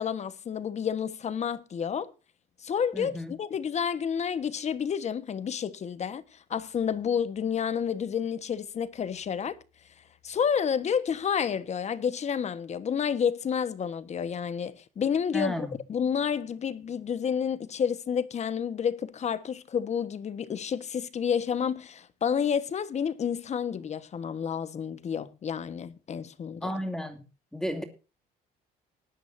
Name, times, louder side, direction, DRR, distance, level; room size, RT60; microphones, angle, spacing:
voice 1, 0.0-2.1 2.6-9.6 10.2-26.7, left 7 dB, 40° left, 1.3 m, -30 dB
voice 2, 2.9-3.3 15.3-15.7 26.6-27.2 27.5-27.8, equal, 5° left, 2.7 m, -32 dB
19.0 x 12.0 x 2.7 m
cardioid pair, 110°, 17 cm